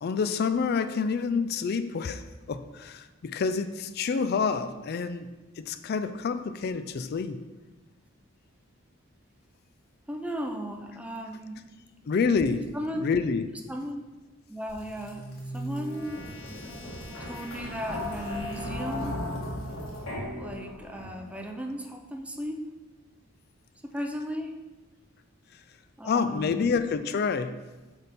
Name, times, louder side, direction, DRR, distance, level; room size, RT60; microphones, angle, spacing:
voice 1, 0.0-2.2 2.5-5.3 5.6-7.4 12.1-12.7 13.0-13.5 26.0-27.5, left 5 dB, 50° left, 11 dB, 0.3 m, -28 dB
voice 2, 10.1-11.7 12.7-14.0 14.5-15.3 15.5-16.3 17.2-19.4 20.3-22.7 23.8-24.6 26.0-26.7, equal, 5° right, 3 dB, 0.5 m, -36 dB
sound 1, 14.7-21.4, left 1 dB, 90° left, 1.7 m, -37 dB
7.8 x 3.5 x 4.2 m, 1.2 s
head